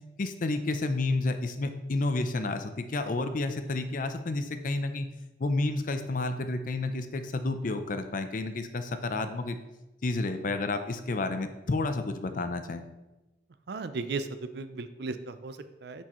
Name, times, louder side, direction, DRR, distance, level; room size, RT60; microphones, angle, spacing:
voice 1, 0.2-5.1 5.4-9.6 10.0-12.8, left 2 dB, 45° left, 8 dB, 0.5 m, -30 dB
voice 2, 13.7-16.0, right 3 dB, 60° right, 11 dB, 0.4 m, -36 dB
9.6 x 4.5 x 3.0 m, 1.0 s
head